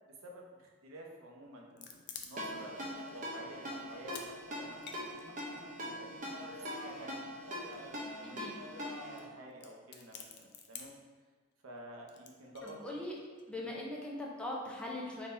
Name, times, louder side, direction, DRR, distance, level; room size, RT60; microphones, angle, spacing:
voice 1, 0.2-7.9 8.3-10.9 11.6-13.0 13.5-13.8, equal, 75° right, -1 dB, 0.7 m, -52 dB
sound 1, 1.5-2.7 3.1-3.2 3.6-4.3 4.5-6.1 6.9-8.0 8.3-8.4 8.6-8.7 9.2-9.3 9.5-11.1 12.1-13.4, left 6 dB, 55° left, 0.4 m, -50 dB
Ringtone, 2.4-9.2, equal, 40° right, 0.8 m, -42 dB
sound 2, 2.5-9.4, left 1 dB, 70° left, 0.8 m, -51 dB
voice 2, 8.2-8.5 12.6-13.2 13.5-15.3, left 1 dB, 5° left, -3 dB, 0.5 m, -41 dB
3.7 x 2.8 x 4.1 m, 1.4 s
head